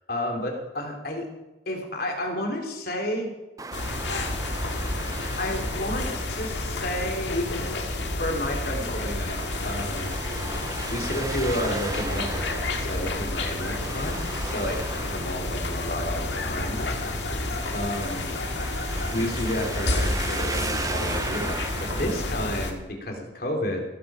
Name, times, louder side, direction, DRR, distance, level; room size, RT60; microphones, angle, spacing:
voice 1, 0.1-1.3 1.6-3.3 5.4-7.9 8.2-10.3 10.9-16.8 17.7-18.3 19.1-23.8, left 1 dB, 55° left, 1 dB, 3.5 m, -31 dB
Traffic noise roadway noise, 3.6-22.3, right 3 dB, 20° right, 0.6 m, -37 dB
sound 1, 3.7-22.7, left 2 dB, 85° left, 2.0 m, -30 dB
16.0 x 13.0 x 5.0 m, 1.0 s
head